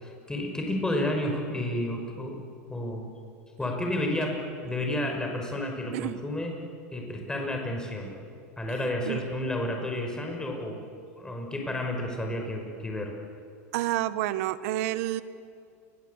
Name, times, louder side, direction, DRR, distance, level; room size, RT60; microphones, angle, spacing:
voice 1, 0.0-2.4 2.7-3.1 3.6-6.6 6.9-8.1 8.6-10.8 11.1-13.2, left 1 dB, 10° left, 2 dB, 5.5 m, -31 dB
voice 2, 13.7-15.2, right 15 dB, 65° right, 14 dB, 1.4 m, -29 dB
29.0 x 22.5 x 8.3 m, 2.3 s
supercardioid pair, 115°, 8 cm